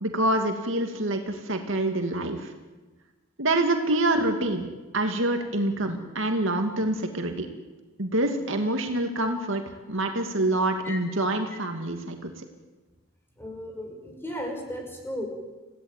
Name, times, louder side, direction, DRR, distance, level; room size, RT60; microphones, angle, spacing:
voice 1, 0.0-2.5 3.4-4.7 4.9-7.5 8.0-9.6 9.9-12.3, right 1 dB, 65° right, 5 dB, 2.6 m, -26 dB
voice 2, 13.4-15.3, equal, 10° left, 2 dB, 5.6 m, -35 dB
28.0 x 17.0 x 9.3 m, 1.2 s
head